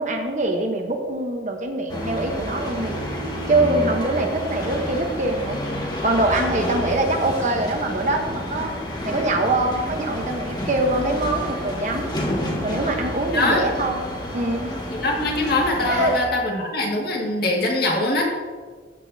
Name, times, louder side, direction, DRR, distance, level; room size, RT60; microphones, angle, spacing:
voice 1, 0.0-2.9 3.5-5.6 6.0-8.7 9.0-12.1 12.6-14.1 14.3-14.7 15.9-16.1, right 2 dB, 40° right, 3 dB, 1.1 m, -23 dB
sound 1, 1.9-16.2, equal, 20° left, 1.4 m, -30 dB
voice 2, 14.9-18.3, left 2 dB, 55° left, -1 dB, 2.0 m, -22 dB
14.5 x 8.2 x 2.8 m, 1.5 s
head